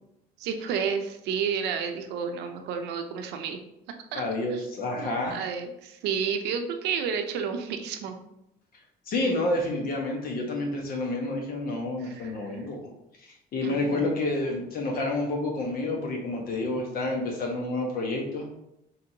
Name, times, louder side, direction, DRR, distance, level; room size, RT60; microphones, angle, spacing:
voice 1, 0.4-3.6 4.1-4.2 4.5-4.6 5.0-8.2 12.0-12.5 13.6-14.1, right 6 dB, 85° right, 6 dB, 0.7 m, -31 dB
voice 2, 4.1-5.4 9.1-12.8 13.2-18.5, left 2 dB, 60° left, 1 dB, 1.3 m, -29 dB
5.2 x 3.5 x 2.9 m, 0.83 s
cardioid pair, 110°, 17 cm